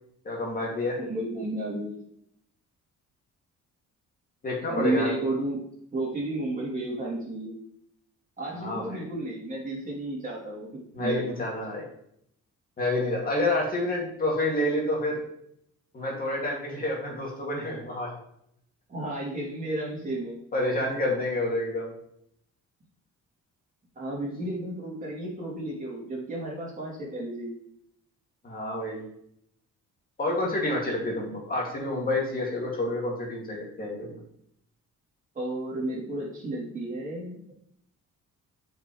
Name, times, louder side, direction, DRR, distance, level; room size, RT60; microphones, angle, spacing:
voice 1, 0.2-1.0 4.4-5.1 8.5-9.0 10.9-11.8 12.8-15.2 15.9-18.1 20.5-21.9 28.4-29.0 30.2-34.2, left 1 dB, 30° left, -2 dB, 2.2 m, -28 dB
voice 2, 1.0-2.0 4.7-5.6 5.9-7.5 8.4-10.7 11.0-11.2 18.9-20.4 23.9-27.5 35.3-37.5, right 1 dB, 25° right, -5 dB, 2.9 m, -32 dB
7.9 x 5.3 x 3.1 m, 0.71 s
cardioid pair, 145°, 30 cm